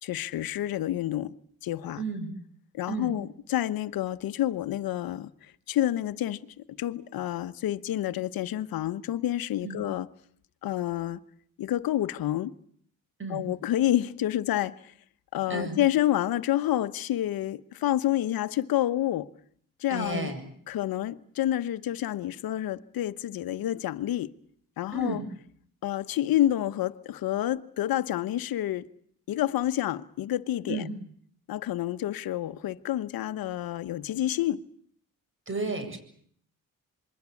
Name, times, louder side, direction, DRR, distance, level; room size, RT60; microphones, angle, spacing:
voice 1, 0.0-1.3 1.6-2.0 2.7-6.4 6.7-10.1 10.6-11.2 11.6-12.5 13.3-14.9 15.3-19.3 19.8-20.3 20.7-24.3 24.8-25.2 25.8-28.9 29.3-30.9 31.5-34.7, left 13 dB, 80° left, 1.1 m, -29 dB
voice 2, 2.0-2.3 2.9-3.1 9.6-9.8 13.2-13.5 15.5-15.8 19.9-20.4 24.9-25.2 30.7-31.0 35.5-36.0, right 3 dB, 35° right, 7.7 m, -32 dB
27.0 x 22.5 x 8.4 m
cardioid pair, 65°, 35 cm